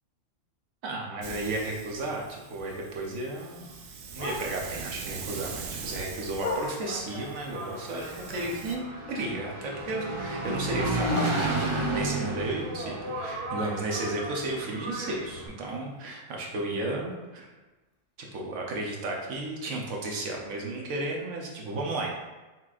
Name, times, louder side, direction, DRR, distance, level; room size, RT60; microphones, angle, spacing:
voice 1, 0.8-3.7 4.1-11.5 11.8-17.5 18.3-22.2, right 2 dB, 90° right, -1 dB, 1.2 m, -33 dB
Hiss, 1.2-8.8, right 5 dB, 65° right, 0.8 m, -42 dB
Bark, 2.1-4.8 5.2-7.1 7.6-9.4 9.7-12.0 12.5-16.4 16.7-16.8 17.1-17.5 17.9-18.0 18.4-18.5 19.0-19.1, left 2 dB, 40° left, 0.5 m, -42 dB
Engine, 6.7-15.5, right 2 dB, 40° right, 0.4 m, -32 dB
5.6 x 3.1 x 2.4 m, 1.2 s
omnidirectional pair, 1.4 m